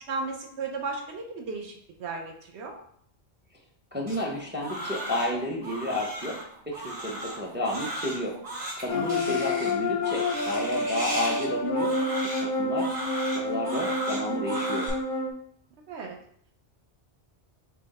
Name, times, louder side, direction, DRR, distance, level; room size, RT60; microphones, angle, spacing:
voice 1, 0.1-2.7 8.9-9.4 15.9-16.2, right 4 dB, 75° right, 1 dB, 1.1 m, -35 dB
voice 2, 3.9-6.4 6.7-8.4 8.8-11.9 12.4-12.9 13.3-14.9, left 1 dB, 15° right, 0 dB, 0.5 m, -31 dB
Crying sobbing, 4.1-14.9, right 1 dB, 35° right, 1.8 m, -36 dB
sound 1, 8.9-15.3, left 2 dB, 60° left, 0.6 m, -29 dB
5.6 x 2.2 x 4.1 m, 0.65 s
omnidirectional pair, 1.2 m